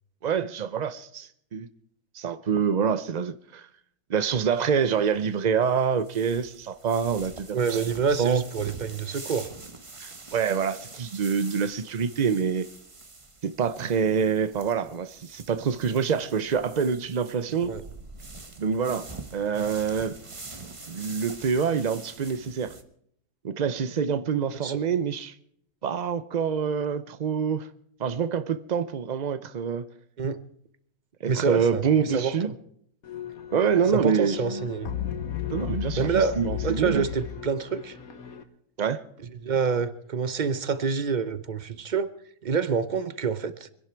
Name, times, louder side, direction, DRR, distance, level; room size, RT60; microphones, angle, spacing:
voice 1, 0.2-1.7 2.1-3.7 4.1-7.8 8.2-8.4 10.0-12.7 13.4-17.8 18.6-20.2 20.9-22.7 23.4-25.3 25.8-27.7 28.0-29.9 31.2-32.5 33.5-34.7 35.5-37.1 38.8-39.0, right 6 dB, 80° right, 0.3 m, -26 dB
sound 1, 4.2-22.8, right 3 dB, 20° right, 1.0 m, -45 dB
voice 2, 7.5-9.5 17.6-17.8 24.6-24.8 30.2-30.4 31.3-32.5 33.9-34.9 36.0-38.0 39.4-42.1 42.4-43.7, right 6 dB, 40° right, 0.7 m, -27 dB
sound 2, 33.0-38.4, left 10 dB, 65° left, 1.7 m, -35 dB
25.0 x 11.0 x 4.5 m
omnidirectional pair, 1.7 m